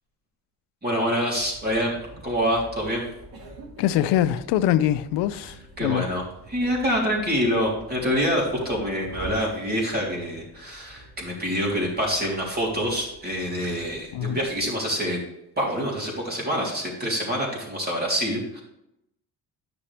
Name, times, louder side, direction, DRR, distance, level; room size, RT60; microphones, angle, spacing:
voice 1, 0.8-2.0 2.2-3.1 5.8-6.2 6.5-15.2 15.6-18.6, equal, 25° right, 3.3 m, -26 dB
sound 1, 1.3-14.7, equal, 60° right, 3.5 m, -46 dB
voice 2, 3.8-6.1 14.1-14.4, left 12 dB, 90° left, 0.6 m, -23 dB
9.9 x 6.1 x 3.3 m
cardioid pair, 100°, 40 cm